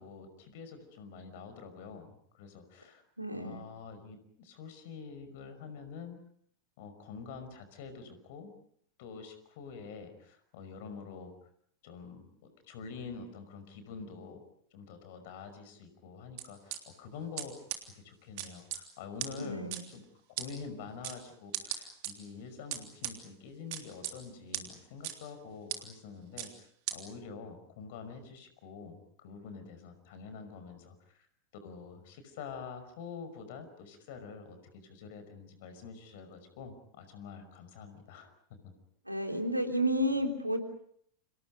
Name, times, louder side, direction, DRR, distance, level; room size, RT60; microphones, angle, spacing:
voice 1, 0.0-3.0 3.3-6.2 6.8-8.5 9.0-11.3 11.8-14.4 14.7-17.6 18.0-20.0 20.3-31.3 31.5-38.7, left 5 dB, 50° left, 10 dB, 5.5 m, -47 dB
voice 2, 3.2-3.6 19.4-19.8 39.1-40.6, equal, 85° right, 4 dB, 3.3 m, -31 dB
sound 1, 16.4-16.8 17.4-17.5 17.7-17.8 18.4-18.8 19.2-19.3 19.7-19.8 20.4-20.5 21.0-21.2 21.5-22.1 22.7-23.1 23.7-24.1 24.5-24.6 25.0-25.1 25.7-25.8 26.4-26.5 26.9-27.0, right 14 dB, 45° right, 3.3 m, -36 dB
29.5 x 27.0 x 5.3 m, 0.68 s
figure-of-eight pair, 90°, 0 cm